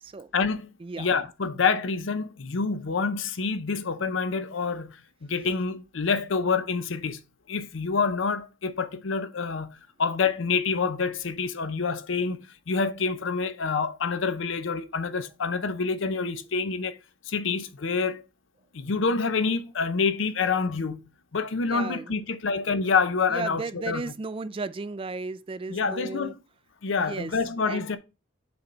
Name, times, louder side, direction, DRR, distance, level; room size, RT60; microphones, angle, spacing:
voice 1, 0.3-0.7 1.0-5.0 5.3-7.2 7.5-17.0 17.3-18.2 18.7-21.0 21.3-24.0 25.7-26.3 26.8-28.0, left 5 dB, 70° left, 0.6 m, -27 dB
voice 2, 21.7-22.2 23.3-26.3 27.0-27.3 27.6-28.0, right 3 dB, 25° right, 0.3 m, -35 dB
6.8 x 3.9 x 4.4 m
head